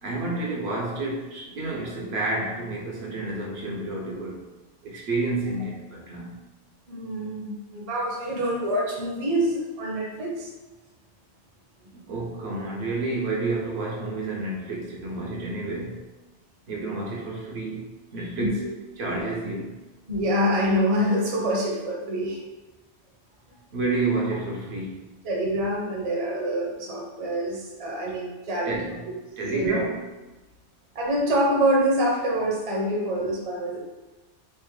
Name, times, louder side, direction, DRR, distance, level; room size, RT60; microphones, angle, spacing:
voice 1, 0.0-4.5 4.8-6.4 11.9-16.0 16.7-18.7 19.0-19.8 23.7-25.2 28.6-30.0, right 2 dB, 70° right, -2 dB, 0.8 m, -30 dB
voice 2, 6.9-10.5 18.4-18.7 20.1-22.4 25.2-28.7 29.5-29.8 30.9-33.8, equal, 40° right, -3 dB, 0.6 m, -26 dB
3.2 x 2.0 x 3.0 m, 1.2 s
omnidirectional pair, 1.2 m